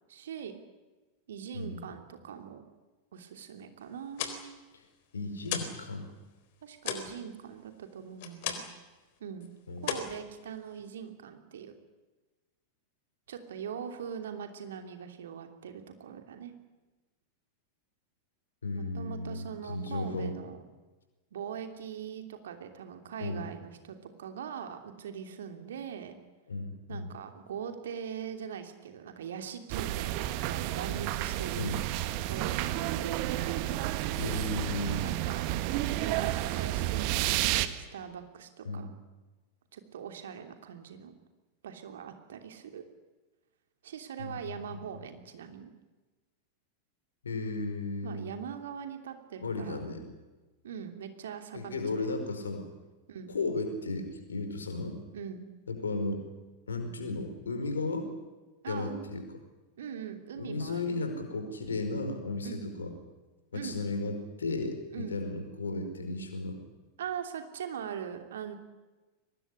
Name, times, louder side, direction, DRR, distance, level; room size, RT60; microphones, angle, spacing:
voice 1, 0.1-0.6 1.3-2.6 3.1-4.6 6.6-8.6 9.2-9.5 9.8-11.7 13.3-16.5 18.7-20.6 21.3-26.2 26.9-31.8 32.3-33.3 34.9-38.9 39.7-41.1 41.6-42.8 43.8-45.7 48.0-49.9 50.6-52.2 53.1-53.3 55.1-55.4 58.6-59.1 59.8-61.0 62.4-62.6 63.5-63.8 64.9-65.2 67.0-68.5, right 8 dB, 60° right, 6 dB, 3.0 m, -42 dB
voice 2, 1.5-1.8 4.7-4.8 5.1-6.1 9.7-9.9 18.6-20.4 23.2-23.4 26.5-27.0 31.6-31.8 34.2-35.1 38.6-38.9 44.2-44.8 47.2-48.3 49.4-50.0 51.5-52.7 53.3-55.0 55.7-56.2 56.7-58.1 58.7-59.2 60.4-62.9 63.5-66.6, left 2 dB, 70° left, 6 dB, 5.0 m, -34 dB
sound 1, 3.9-5.8 6.1-8.9 9.2-9.5 9.8-10.9, left 8 dB, 50° left, 3.9 m, -37 dB
sound 2, 29.7-37.7, right 14 dB, 45° right, 1.6 m, -31 dB
23.5 x 20.0 x 9.9 m, 1.2 s
figure-of-eight pair, 90°, 0 cm